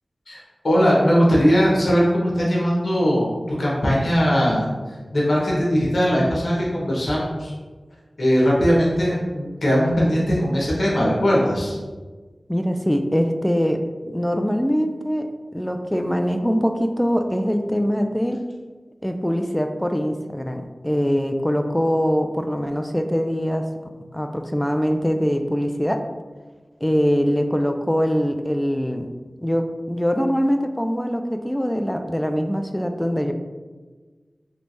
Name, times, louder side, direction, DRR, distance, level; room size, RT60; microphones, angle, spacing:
voice 1, 0.6-4.7 5.1-7.5 8.2-11.8, equal, 75° left, -5 dB, 1.0 m, -19 dB
voice 2, 12.5-18.4 19.0-23.7 24.1-26.0 26.8-29.1 29.4-33.3, equal, 5° left, 6 dB, 0.3 m, -23 dB
3.3 x 3.1 x 2.6 m, 1.4 s
wide cardioid pair, 45°, 0 cm